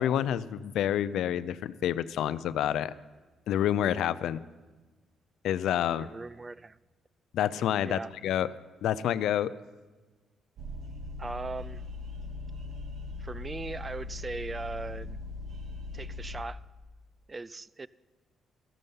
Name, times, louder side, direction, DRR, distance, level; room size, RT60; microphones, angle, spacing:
voice 1, 0.0-2.9 3.5-4.4 5.4-6.1 7.3-8.5 8.8-9.5, left 10 dB, 80° left, 16 dB, 0.4 m, -28 dB
voice 2, 6.0-6.8 7.8-8.1 11.2-11.8 13.2-15.2 15.9-16.6 17.3-17.9, right 3 dB, 25° right, 20 dB, 0.3 m, -39 dB
sound 1, 10.6-16.4, left 3 dB, 60° right, 1.1 m, -40 dB
14.0 x 12.0 x 5.5 m, 1.3 s
cardioid pair, 90°, 0 cm